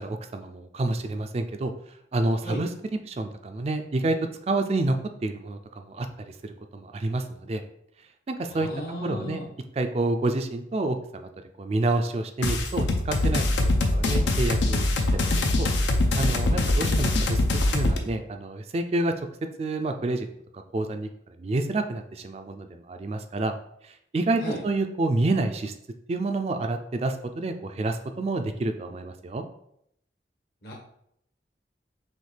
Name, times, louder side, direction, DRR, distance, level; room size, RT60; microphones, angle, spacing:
voice 1, 0.0-1.7 2.1-4.2 4.5-7.6 8.3-8.7 9.0-9.4 9.8-11.3 11.6-14.8 15.1-15.7 16.2-17.4 17.7-19.1 19.6-20.3 20.7-23.5 23.8-25.7 26.1-29.4, right 2 dB, 35° right, 7 dB, 0.3 m, -28 dB
voice 2, 8.5-9.4 16.5-16.9 24.4-24.6 30.6-30.7, equal, 60° left, -3 dB, 1.3 m, -35 dB
sound 1, 12.4-18.0, left 2 dB, 80° left, 0.6 m, -23 dB
6.2 x 2.4 x 3.3 m, 0.73 s
head